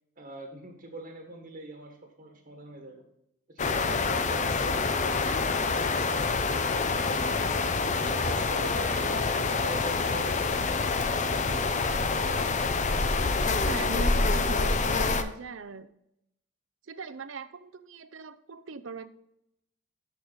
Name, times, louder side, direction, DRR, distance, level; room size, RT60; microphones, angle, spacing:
voice 1, 0.2-3.0 3.5-7.3 8.0-11.7, right 1 dB, 45° right, 2 dB, 1.4 m, -43 dB
sound 1, 3.6-15.2, left 4 dB, 40° left, 0.6 m, -27 dB
voice 2, 13.6-15.9 16.9-19.1, right 5 dB, 85° right, 12 dB, 0.6 m, -40 dB
13.0 x 4.9 x 4.0 m, 0.80 s
head